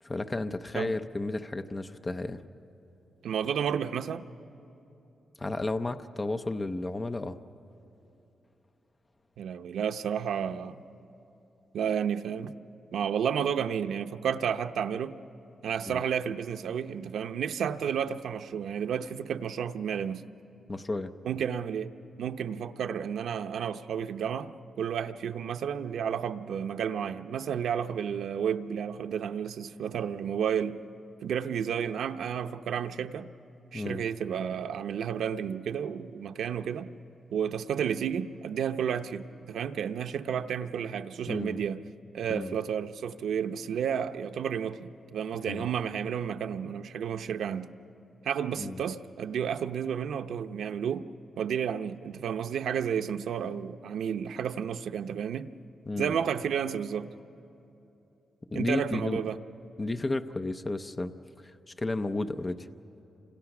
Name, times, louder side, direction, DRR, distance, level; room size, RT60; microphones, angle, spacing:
voice 1, 0.0-2.4 5.4-7.4 15.9-16.0 20.7-21.1 33.7-34.1 41.3-41.6 42.3-42.6 45.5-45.7 48.6-48.8 55.9-56.1 58.5-59.2 59.8-61.1 61.4-62.7, left 2 dB, 20° left, 9 dB, 0.6 m, -32 dB
voice 2, 3.2-4.2 9.4-10.8 11.7-12.5 12.9-15.2 15.6-20.2 21.2-21.9 22.2-30.8 31.2-33.3 33.7-36.9 37.3-41.8 42.1-47.7 48.2-51.1 51.4-55.5 56.0-57.1 58.5-59.4, right 8 dB, 85° right, 7 dB, 0.7 m, -31 dB
30.0 x 26.5 x 6.0 m, 3.0 s
wide cardioid pair, 180°, 0 cm